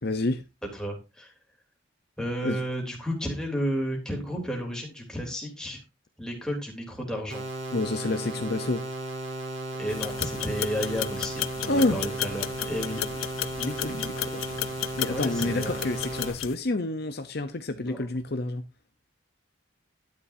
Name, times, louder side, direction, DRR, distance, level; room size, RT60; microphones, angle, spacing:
voice 1, 0.0-0.4 2.4-2.6 7.7-8.8 11.7-12.0 13.6-14.5 15.0-18.6, left 2 dB, 50° left, 0.8 m, -28 dB
voice 2, 0.7-1.3 2.2-5.8 6.2-7.4 9.8-13.0 15.0-15.8 17.7-18.0, equal, 5° left, 3.2 m, -32 dB
sound 1, 7.3-16.3, right 2 dB, 75° right, 3.8 m, -35 dB
sound 2, 9.9-16.6, left 11 dB, 85° left, 0.6 m, -34 dB
12.0 x 9.8 x 2.7 m
head